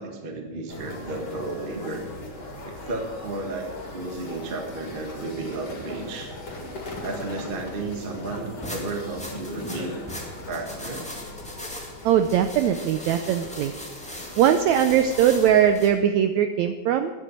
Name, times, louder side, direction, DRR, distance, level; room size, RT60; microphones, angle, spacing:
voice 1, 0.0-2.0 2.6-6.3 7.0-10.0 10.5-11.1, right 2 dB, 45° right, 3 dB, 0.6 m, -33 dB
sound 1, 0.7-15.8, left 2 dB, 50° left, 2.8 m, -39 dB
sound 2, 8.6-15.9, left 1 dB, 5° left, 1.0 m, -39 dB
voice 2, 12.0-13.7 14.4-17.1, right 9 dB, 80° right, 9 dB, 1.6 m, -20 dB
11.0 x 8.2 x 9.2 m, 1.3 s
omnidirectional pair, 3.8 m